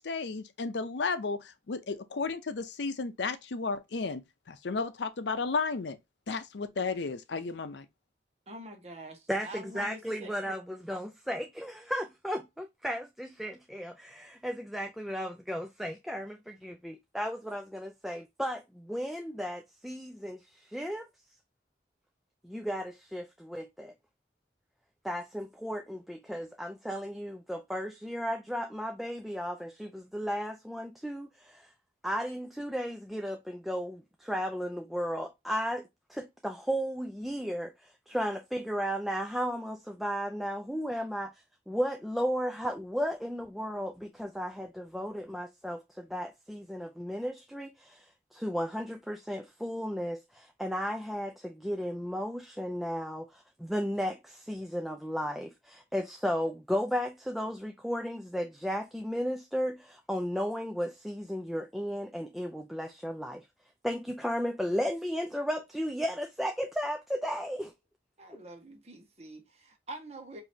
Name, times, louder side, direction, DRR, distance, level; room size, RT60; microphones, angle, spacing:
voice 1, 0.0-6.0 6.3-7.9, left 4 dB, 80° left, 0.6 m, -33 dB
voice 2, 8.5-10.3 68.2-70.4, right 1 dB, 35° right, 1.2 m, -45 dB
voice 3, 9.3-21.1 22.4-23.9 25.0-31.7 32.0-41.3 41.7-63.5 63.8-67.7 68.3-68.4, equal, ahead, 0.3 m, -34 dB
5.0 x 2.8 x 2.7 m
head